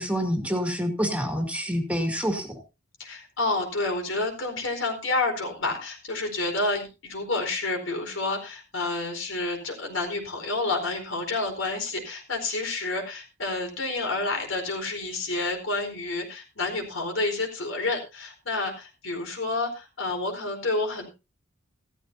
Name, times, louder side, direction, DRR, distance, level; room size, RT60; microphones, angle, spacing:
voice 1, 0.0-2.5, equal, 5° right, 4 dB, 2.2 m, -27 dB
voice 2, 3.0-21.1, left 2 dB, 70° left, 3 dB, 4.5 m, -29 dB
15.5 x 13.5 x 2.7 m, 0.28 s
head